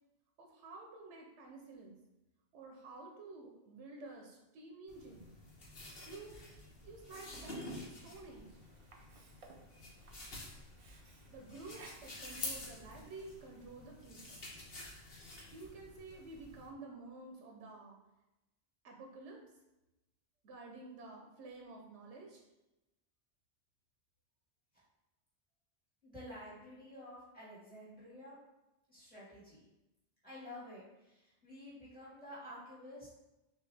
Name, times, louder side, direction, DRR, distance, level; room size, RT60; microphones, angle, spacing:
voice 1, 0.4-2.0 2.5-5.3 6.1-6.4 6.8-8.6 11.3-14.4 15.5-18.0 18.8-19.4 20.4-22.4, right 3 dB, 85° right, 1 dB, 1.0 m, -51 dB
sound 1, 4.9-16.7, left 2 dB, 60° left, 1.1 m, -49 dB
Sink (filling or washing), 7.8-13.8, right 3 dB, 45° right, 0.4 m, -62 dB
voice 2, 26.0-28.4 28.9-29.6 30.2-33.1, left 1 dB, 5° right, -9 dB, 1.5 m, -51 dB
6.1 x 2.4 x 3.3 m, 0.97 s
omnidirectional pair, 1.2 m